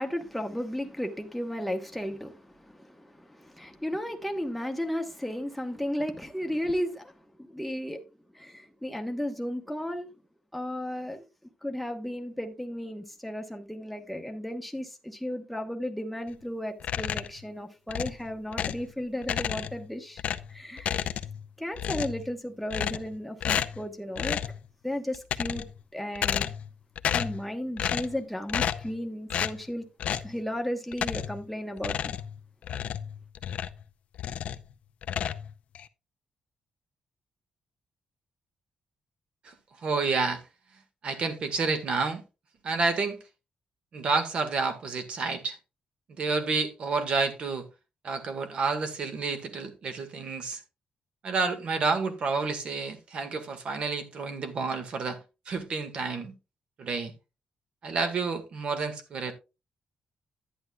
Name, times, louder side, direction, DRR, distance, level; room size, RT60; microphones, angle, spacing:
voice 1, 0.0-8.0 8.3-10.1 10.5-11.2 11.6-20.2 20.5-21.0 21.6-24.4 24.8-25.7 25.9-26.5 27.1-29.9 30.2-32.1, equal, ahead, 1.1 m, -34 dB
sound 1, 16.8-17.4 17.9-18.9 19.2-19.9 20.2-21.5 21.7-22.3 22.7-23.1 23.4-23.8 24.2-24.6 25.1-25.8 26.1-26.7 27.0-27.4 27.8-28.2 28.5-28.9 29.3-29.6 30.0-30.3 30.9-31.4 31.8-33.8 34.1-34.7 35.0-35.9, left 9 dB, 65° left, 0.5 m, -31 dB
voice 2, 39.8-40.4 41.0-42.2 42.6-43.2 43.9-45.6 46.1-47.6 48.0-50.6 51.2-55.2 55.5-56.3 56.8-57.1 57.8-59.3, right 4 dB, 50° right, 1.7 m, -29 dB
11.0 x 9.5 x 2.3 m
wide cardioid pair, 150°, 2 cm